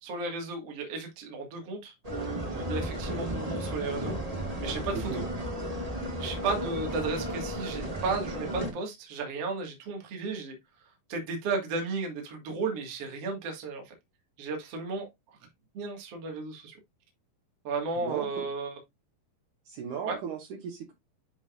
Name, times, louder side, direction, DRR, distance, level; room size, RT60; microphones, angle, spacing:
voice 1, 0.0-4.2 4.6-5.3 6.2-10.5 11.1-13.9 14.4-15.1 15.7-16.8 17.6-18.8 20.1-20.2, right 4 dB, 50° right, 2.5 m, -34 dB
sound 1, 2.0-8.7, equal, 20° right, 1.0 m, -34 dB
voice 2, 18.0-18.5 19.7-20.9, right 7 dB, 70° right, 2.3 m, -37 dB
10.5 x 4.0 x 2.4 m
omnidirectional pair, 4.1 m